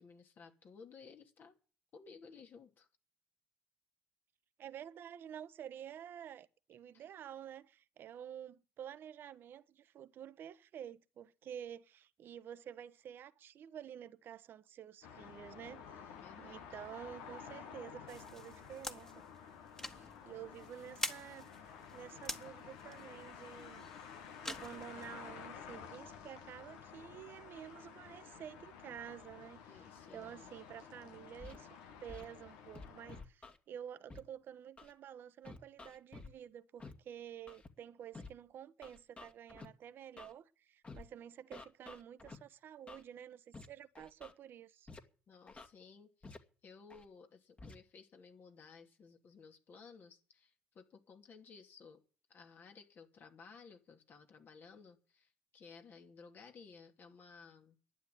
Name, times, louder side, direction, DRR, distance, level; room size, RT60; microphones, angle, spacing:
voice 1, 0.0-1.6 1.9-2.9 6.9-7.0 16.1-16.7 29.7-30.5 45.3-52.0 52.3-57.8, left 5 dB, 55° left, 2.8 m, -57 dB
voice 2, 4.6-19.1 19.9-21.5 21.9-23.9 24.1-29.8 30.1-44.9, right 9 dB, 60° right, 1.1 m, -50 dB
sound 1, 15.0-33.2, left 7 dB, 80° left, 1.6 m, -52 dB
sound 2, 18.1-25.4, left 1 dB, 15° left, 1.8 m, -47 dB
Scratching (performance technique), 31.4-31.6 32.1-32.2 32.7-33.6 34.1-34.2 34.8-34.9 35.4-36.3 36.8-36.9 37.5-37.7 38.1-38.3 38.8-39.7 40.2-40.3 40.8-41.0 41.5-42.4 42.9-43.0 43.5-43.7 43.9-44.3 44.9-45.0 45.5-45.7 46.2-46.4 46.9-47.0 47.6-47.7, left 3 dB, 30° left, 2.2 m, -50 dB
12.0 x 9.5 x 8.5 m
hypercardioid pair, 55°, 4 cm